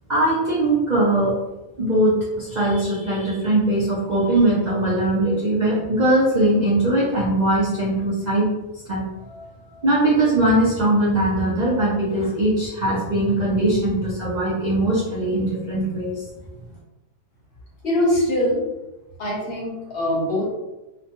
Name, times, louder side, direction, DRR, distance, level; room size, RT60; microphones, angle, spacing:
voice 1, 0.1-1.4 1.8-8.5 8.9-9.4 9.7-16.2, right 1 dB, 90° right, -7 dB, 0.3 m, -20 dB
voice 2, 17.8-18.6 19.2-20.5, left 1 dB, 50° left, -4 dB, 0.8 m, -22 dB
3.0 x 2.1 x 2.8 m, 1.0 s
omnidirectional pair, 1.6 m